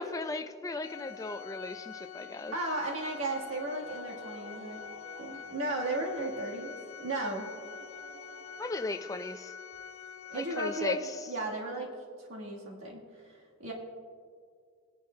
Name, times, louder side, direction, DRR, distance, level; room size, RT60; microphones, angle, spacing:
voice 1, 0.0-2.5 8.6-9.5 10.3-11.1, left 2 dB, 15° left, 7 dB, 0.4 m, -36 dB
Organ, 0.8-11.4, left 8 dB, 85° left, 0.5 m, -46 dB
voice 2, 2.5-4.8 5.2-6.7 7.0-7.5 10.3-11.9 12.2-13.7, right 2 dB, 90° right, -2 dB, 1.5 m, -35 dB
sound 1, 2.7-9.1, right 2 dB, 60° right, 0.8 m, -53 dB
20.0 x 10.5 x 2.2 m, 2.1 s
head